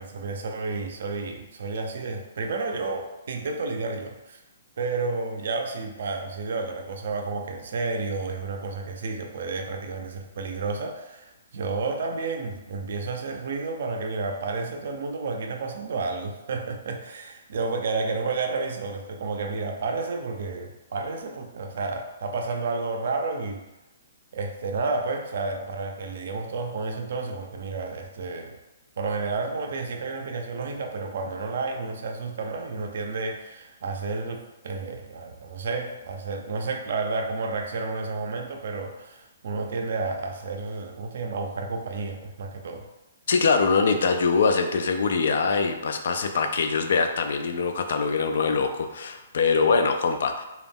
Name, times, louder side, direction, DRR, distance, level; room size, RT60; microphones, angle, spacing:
voice 1, 0.0-4.4 4.8-23.6 24.3-28.6 29.0-42.9, right 3 dB, 65° right, 3 dB, 0.4 m, -31 dB
voice 2, 43.3-50.5, left 4 dB, 70° left, 6 dB, 0.3 m, -23 dB
2.3 x 2.0 x 3.4 m, 0.99 s
hypercardioid pair, 145°, 0 cm